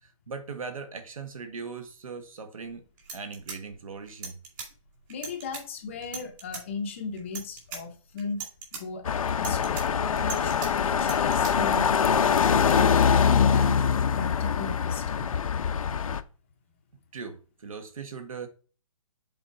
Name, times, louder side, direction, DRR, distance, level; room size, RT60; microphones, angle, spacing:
voice 1, 0.0-2.8 3.1-4.4 17.1-18.5, right 5 dB, 75° right, 1.5 m, -39 dB
sound 1, 2.6-2.7 3.0-4.7 5.1-5.6 6.0-6.6 7.2-7.8 8.2-8.8 9.3-10.7 11.0-11.5, right 5 dB, 35° right, 3.0 m, -39 dB
voice 2, 5.1-8.4 8.7-13.7 14.1-15.3, left 4 dB, 20° left, 0.7 m, -36 dB
sound 2, 9.0-16.2, left 7 dB, 75° left, 0.6 m, -23 dB
7.3 x 4.1 x 4.3 m
hypercardioid pair, 170°, 18 cm